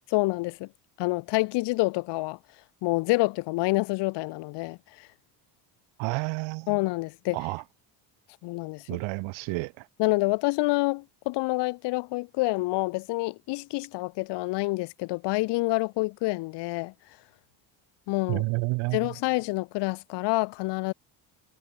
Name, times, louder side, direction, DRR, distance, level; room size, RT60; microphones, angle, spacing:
voice 1, 0.1-0.7 1.0-2.4 2.8-5.1 6.7-7.4 8.4-9.0 10.0-16.9 18.1-18.4 18.9-20.9, left 22 dB, 70° left, 0.8 m, -27 dB
voice 2, 6.0-6.7 7.3-7.6 8.9-9.8 18.3-19.1, right 26 dB, 80° right, 0.9 m, -30 dB
cardioid pair, 130°, 44 cm